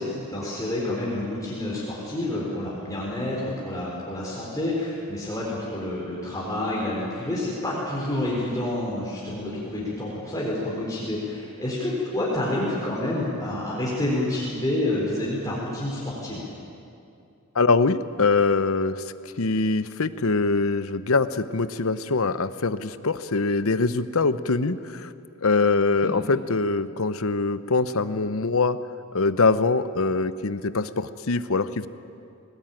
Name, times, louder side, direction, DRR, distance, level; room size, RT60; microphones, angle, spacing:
voice 1, 0.0-16.4 26.0-26.1, left 1 dB, 15° left, -5 dB, 3.9 m, -28 dB
voice 2, 17.5-19.0 19.4-25.1 25.4-28.8 29.1-31.9, left 3 dB, 70° left, 13 dB, 0.8 m, -23 dB
22.0 x 19.0 x 9.0 m, 2.5 s
head